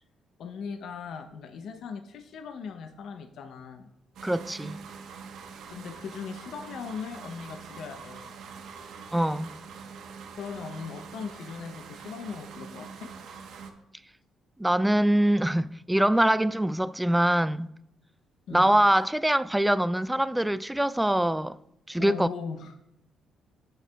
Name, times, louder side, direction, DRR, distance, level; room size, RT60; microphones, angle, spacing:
voice 1, 0.4-3.9 5.7-8.3 10.4-13.1 18.5-18.7 22.0-22.7, left 6 dB, 70° left, 0.6 m, -39 dB
voice 2, 4.2-4.8 9.1-9.5 14.6-17.7 18.5-21.6 21.9-22.3, right 1 dB, 5° right, 0.3 m, -24 dB
sound 1, 4.2-13.7, right 6 dB, 80° right, 1.0 m, -44 dB
15.5 x 6.7 x 2.2 m
cardioid pair, 90°, 0 cm